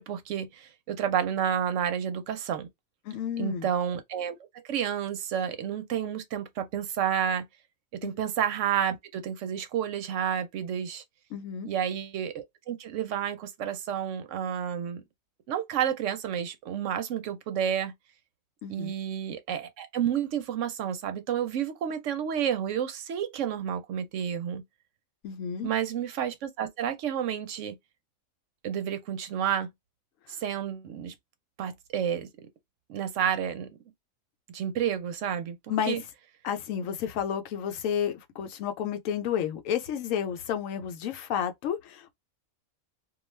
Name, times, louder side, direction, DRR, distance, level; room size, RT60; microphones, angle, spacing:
voice 1, 0.0-2.7 3.4-7.5 7.9-11.0 11.6-15.0 15.5-17.9 18.7-24.6 25.6-27.8 28.6-29.7 30.3-31.1 31.6-32.3 32.9-33.7 34.5-35.6 35.9-36.0, right 9 dB, 70° right, 0.9 m, -30 dB
voice 2, 3.1-3.7 8.0-8.2 11.3-11.7 18.6-18.9 25.2-25.7 35.7-36.0 36.4-42.1, left 8 dB, 75° left, 0.9 m, -31 dB
2.3 x 2.3 x 3.1 m
omnidirectional pair, 1.4 m